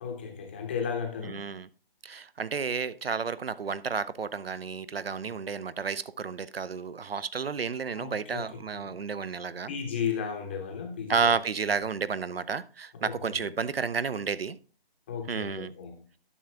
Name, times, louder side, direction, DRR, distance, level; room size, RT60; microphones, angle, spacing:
voice 1, 0.0-1.5 5.2-5.3 8.0-8.9 9.7-11.4 12.9-13.5 15.1-16.0, left 7 dB, 10° left, 0.7 m, -35 dB
voice 2, 1.2-1.7 2.0-9.7 11.1-14.6 15.3-15.7, right 5 dB, 70° right, 0.7 m, -31 dB
11.0 x 5.9 x 3.4 m
figure-of-eight pair, 155°, 30 cm